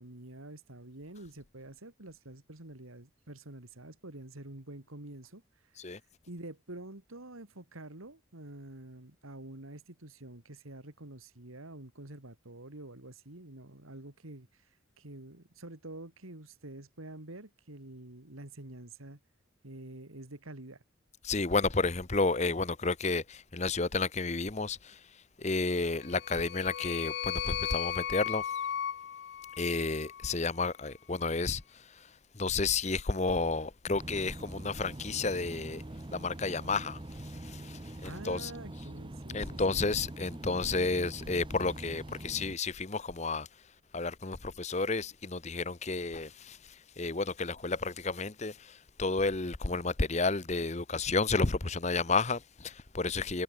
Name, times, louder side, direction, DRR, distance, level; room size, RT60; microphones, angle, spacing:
voice 1, 0.0-6.0 6.3-19.2 19.6-20.8 38.0-39.8, right 2 dB, 90° right, 2.7 m, -47 dB
voice 2, 21.2-25.0 25.4-28.5 29.6-35.8 36.1-38.5 39.3-43.5 43.9-53.4, left 3 dB, 35° left, 0.9 m, -31 dB
sound 1, 26.0-30.3, left 10 dB, 55° left, 0.3 m, -36 dB
sound 2, 33.9-42.5, right 1 dB, 25° right, 0.8 m, -44 dB
head